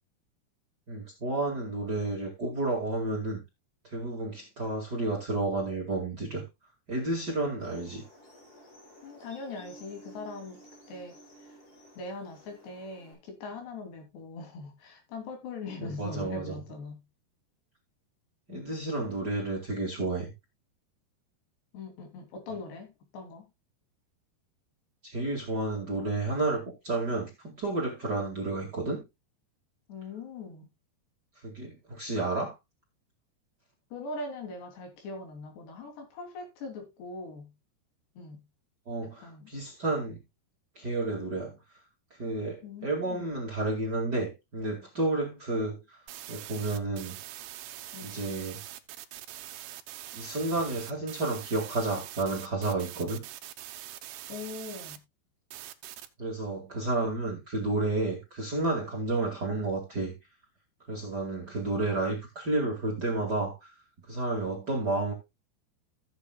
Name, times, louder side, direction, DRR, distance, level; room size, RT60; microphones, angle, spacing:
voice 1, 0.9-3.4 3.8-6.4 6.9-8.0 15.8-16.6 18.5-20.3 25.0-29.0 31.4-32.5 38.9-40.2 40.8-41.6 42.1-46.0 46.3-47.2 48.0-48.6 50.1-53.2 56.2-60.1 60.9-63.7 64.1-65.1, right 2 dB, 30° right, 2.1 m, -31 dB
sound 1, 7.6-13.1, right 1 dB, 30° left, 4.7 m, -53 dB
voice 2, 9.0-10.6 10.9-11.1 12.0-17.0 18.5-18.7 21.7-23.5 29.9-30.7 33.9-37.5 38.2-38.4 39.2-39.5 42.6-43.3 47.9-48.2 54.3-55.0, left 3 dB, 75° left, 5.3 m, -41 dB
sound 2, 46.1-55.0 55.5-56.1, right 13 dB, 80° right, 3.0 m, -43 dB
15.5 x 7.9 x 2.3 m
omnidirectional pair, 4.9 m